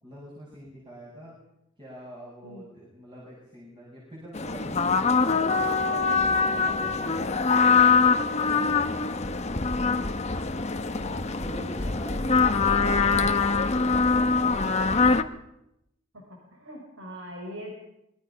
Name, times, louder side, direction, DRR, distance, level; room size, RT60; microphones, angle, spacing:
voice 1, 0.0-1.4 1.8-6.1 6.4-9.2 11.0-15.2, right 1 dB, 20° right, -5 dB, 6.8 m, -45 dB
sound 1, 4.3-15.2, left 4 dB, 30° left, 1.0 m, -23 dB
voice 2, 12.6-13.2 16.1-17.7, equal, 65° right, 1 dB, 4.8 m, -41 dB
25.5 x 21.5 x 5.7 m, 0.85 s
head